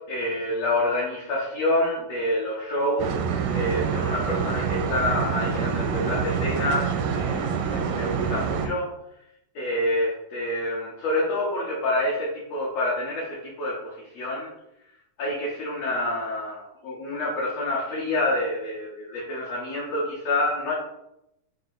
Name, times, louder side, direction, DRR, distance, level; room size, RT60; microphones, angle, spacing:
voice 1, 0.1-3.2 3.5-8.9 9.5-14.5 15.2-20.7, left 1 dB, 70° left, -5 dB, 1.6 m, -27 dB
sound 1, 3.0-8.7, right 6 dB, 85° right, 2.1 m, -26 dB
7.5 x 2.7 x 2.6 m, 0.81 s
omnidirectional pair, 3.7 m